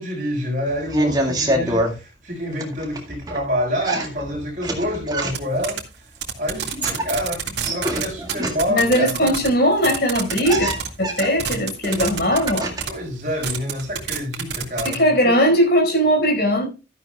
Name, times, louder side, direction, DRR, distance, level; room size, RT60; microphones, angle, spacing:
voice 1, 0.0-5.8 6.4-9.3 11.2-11.6 12.9-15.4, equal, 40° right, 6.2 m, -27 dB
sound 1, 0.7-1.9 2.5-3.4 3.8-5.6 6.6-8.9 9.8-9.9 10.1-13.0 13.3-14.0, right 1 dB, 20° right, 2.1 m, -26 dB
sound 2, 5.3-5.4 5.6-5.8 6.2-9.5 9.8-10.9 11.2-12.9 13.4-14.9, right 8 dB, 60° right, 2.1 m, -26 dB
voice 2, 8.7-10.7 11.0-12.7 14.8-16.7, equal, 55° left, 5.0 m, -19 dB
13.0 x 11.0 x 2.3 m
head